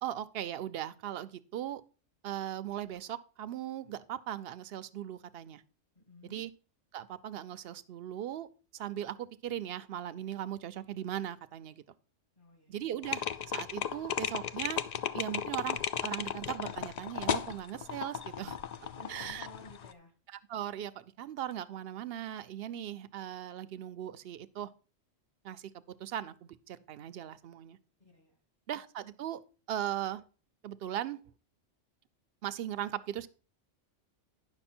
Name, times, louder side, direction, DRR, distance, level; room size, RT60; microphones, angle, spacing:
voice 1, 0.0-1.8 2.2-5.6 6.2-6.5 6.9-8.5 8.7-11.8 12.7-13.2 13.5-14.8 15.1-18.6 19.1-19.5 20.3-24.7 25.4-25.7 26.0-27.8 28.7-29.4 29.7-30.2 30.6-31.2 32.4-33.3, right 11 dB, 65° right, 14 dB, 0.7 m, -38 dB
voice 2, 5.9-6.4 12.4-12.8 18.8-20.1 28.0-28.4, left 1 dB, 45° left, 1 dB, 2.8 m, -54 dB
sound 1, 13.0-19.9, left 8 dB, 85° left, 0.3 m, -35 dB
9.9 x 6.1 x 4.3 m, 0.36 s
omnidirectional pair, 1.3 m